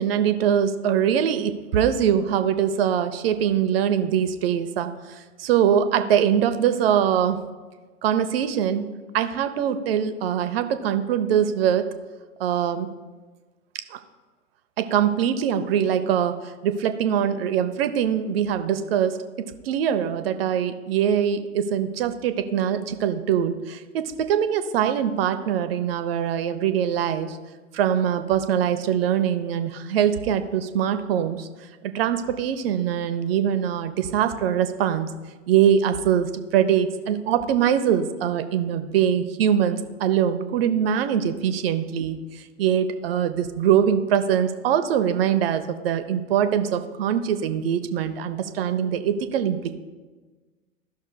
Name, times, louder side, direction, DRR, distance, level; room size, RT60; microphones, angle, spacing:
voice 1, 0.0-7.4 8.0-8.9 9.1-11.9 12.4-12.9 13.9-14.0 14.8-27.4 27.7-31.5 31.8-35.1 35.5-49.7, right 9 dB, 50° right, 10 dB, 0.7 m, -23 dB
14.0 x 6.2 x 2.2 m, 1.3 s
figure-of-eight pair, 95°, 38 cm